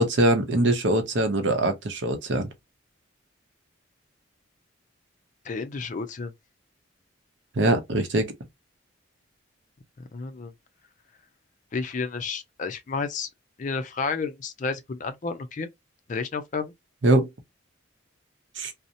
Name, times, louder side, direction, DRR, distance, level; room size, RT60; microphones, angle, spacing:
voice 1, 0.0-2.5 7.6-8.3 17.0-17.3 18.6-18.7, right 1 dB, 65° right, 0.6 m, -22 dB
voice 2, 5.4-6.3 10.0-10.5 11.7-13.3 13.6-15.7 16.1-16.7, left 4 dB, 40° left, 0.4 m, -31 dB
2.7 x 2.0 x 2.5 m
head